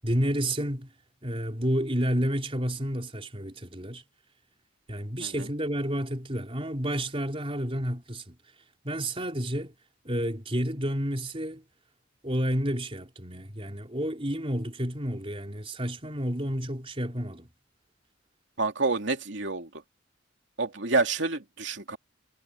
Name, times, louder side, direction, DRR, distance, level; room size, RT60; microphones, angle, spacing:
voice 1, 0.0-0.9 1.2-4.0 4.9-8.4 8.8-9.7 10.0-11.6 12.2-17.5, equal, 30° right, 4.3 m, -30 dB
voice 2, 18.6-19.7 20.6-22.0, right 3 dB, 65° right, 2.7 m, -28 dB
head